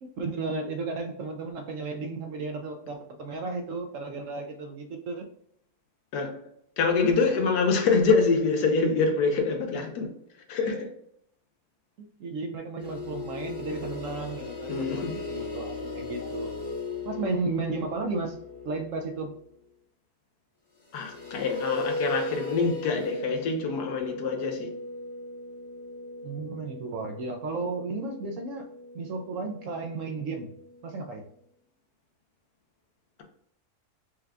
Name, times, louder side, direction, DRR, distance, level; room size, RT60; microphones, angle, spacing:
voice 1, 0.0-5.3 12.0-16.5 17.1-18.4 18.6-19.4 26.2-28.7 28.9-30.5 30.8-31.3, right 3 dB, 70° right, 0.8 m, -34 dB
voice 2, 6.8-10.1 10.5-10.9 14.7-15.1 20.9-24.7, left 4 dB, 90° left, 1.4 m, -25 dB
sound 1, 12.8-19.4 20.8-31.1, left 2 dB, 35° left, 0.7 m, -38 dB
5.0 x 2.2 x 3.4 m
omnidirectional pair, 1.7 m